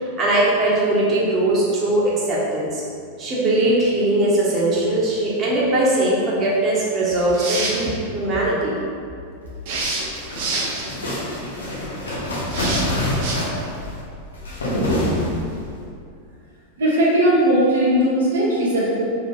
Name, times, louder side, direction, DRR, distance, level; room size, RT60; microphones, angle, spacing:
voice 1, 0.0-2.8 3.2-8.8, right 1 dB, 25° right, -5 dB, 1.5 m, -20 dB
sound 1, 7.2-7.9 9.7-10.9 12.5-12.8 13.2-13.3, right 3 dB, 50° right, 1.1 m, -26 dB
sound 2, 9.7-15.7, left 1 dB, 70° left, 1.5 m, -25 dB
voice 2, 16.8-19.0, right 1 dB, 65° right, -6 dB, 1.4 m, -18 dB
5.0 x 4.9 x 4.4 m, 2.4 s
figure-of-eight pair, 90°, 0 cm